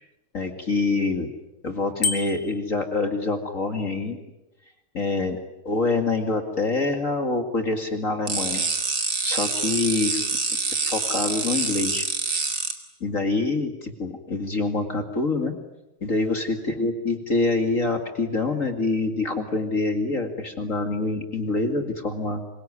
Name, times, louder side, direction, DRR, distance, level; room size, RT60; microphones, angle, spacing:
voice 1, 0.3-1.3 1.6-4.2 4.9-5.4 5.6-8.6 9.2-10.2 10.8-12.1 13.0-15.6 16.0-22.4, left 3 dB, 40° left, 5 dB, 2.5 m, -26 dB
Bicycle bell, 2.0-2.6, left 4 dB, 60° left, 3.1 m, -27 dB
sound 1, 8.3-12.7, right 4 dB, 50° right, 3.1 m, -26 dB
26.0 x 23.5 x 9.8 m, 1.0 s
omnidirectional pair, 2.3 m